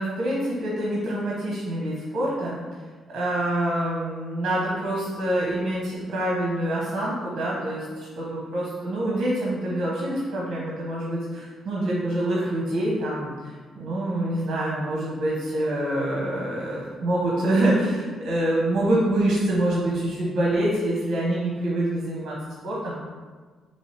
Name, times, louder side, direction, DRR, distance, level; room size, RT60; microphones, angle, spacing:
voice 1, 0.0-2.6 3.1-22.4 22.6-23.0, right 1 dB, 60° right, -5 dB, 0.9 m, -26 dB
4.5 x 2.8 x 3.3 m, 1.5 s
cardioid pair, 90°, 0 cm